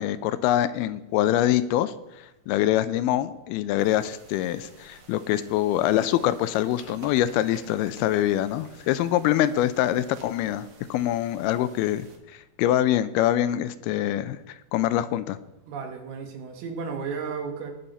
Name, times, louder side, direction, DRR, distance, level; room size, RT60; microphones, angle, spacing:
voice 1, 0.0-1.9 2.5-12.1 12.3-15.4, left 12 dB, 85° left, 14 dB, 2.4 m, -24 dB
sound 1, 3.8-12.2, right 3 dB, 55° right, 1.6 m, -51 dB
voice 2, 15.6-17.7, right 5 dB, 80° right, 4 dB, 3.4 m, -33 dB
19.5 x 6.6 x 4.2 m, 0.97 s
omnidirectional pair, 4.5 m